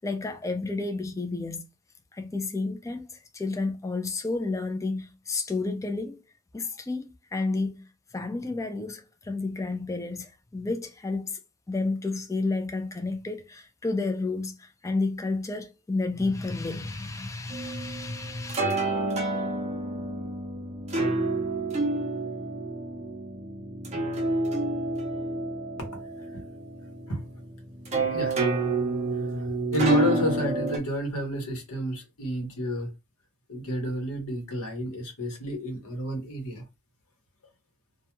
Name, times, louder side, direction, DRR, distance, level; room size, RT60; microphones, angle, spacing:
voice 1, 0.0-1.6 2.1-6.2 6.5-7.1 7.3-11.4 11.7-18.6, left 3 dB, 15° left, 0.3 m, -31 dB
sound 1, 17.5-30.8, right 2 dB, 30° right, 0.6 m, -29 dB
voice 2, 29.3-32.9 33.5-36.6, equal, 75° left, 1.0 m, -30 dB
2.2 x 2.2 x 2.9 m
head